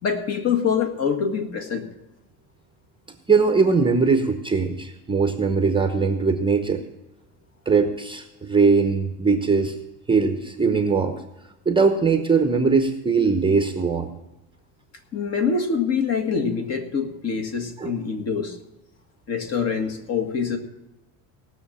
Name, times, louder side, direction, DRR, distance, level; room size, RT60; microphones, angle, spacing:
voice 1, 0.0-1.9 15.1-18.6 19.3-20.6, left 6 dB, 40° left, 5 dB, 1.8 m, -25 dB
voice 2, 3.3-6.8 7.7-9.7 10.1-11.2 11.7-14.1 17.8-17.9, right 4 dB, 10° right, 6 dB, 0.9 m, -20 dB
18.0 x 6.5 x 7.3 m, 0.98 s
cardioid pair, 135°, 39 cm